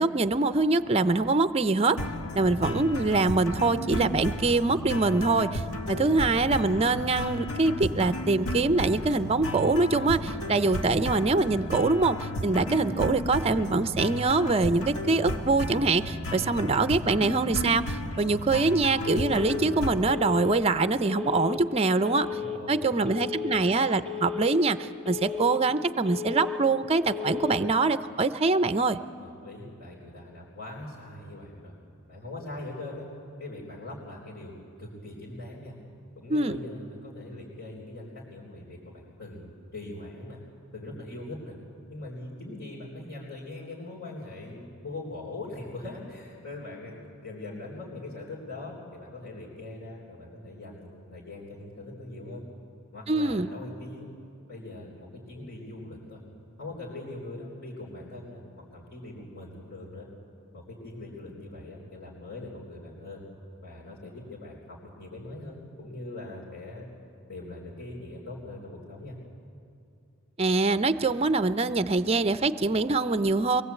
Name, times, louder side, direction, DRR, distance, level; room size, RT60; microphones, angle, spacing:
voice 1, 0.0-2.0 2.3-5.6 5.9-22.3 22.7-29.0 36.3-36.6 53.1-53.5 70.4-73.6, right 3 dB, 30° right, 11 dB, 0.5 m, -24 dB
sound 1, 2.0-20.1, left 1 dB, 85° left, 1.4 m, -33 dB
voice 2, 2.4-2.7 5.7-6.1 16.4-17.2 22.1-23.3 29.2-31.8 32.1-33.1 33.4-35.8 36.2-40.4 40.7-41.6 41.9-52.4 52.9-54.1 54.5-56.2 56.6-58.4 58.7-60.1 60.5-63.2 63.6-66.9 67.3-69.2, left 2 dB, 65° left, -7 dB, 3.8 m, -41 dB
Telephone, 19.1-19.6 20.1-20.6 21.1-21.6 22.1-22.6 23.1-23.6 24.1-24.6 25.1-25.6 26.1-26.6 27.1-27.6, left 8 dB, 5° left, 1.6 m, -34 dB
23.0 x 18.5 x 8.2 m, 2.5 s
head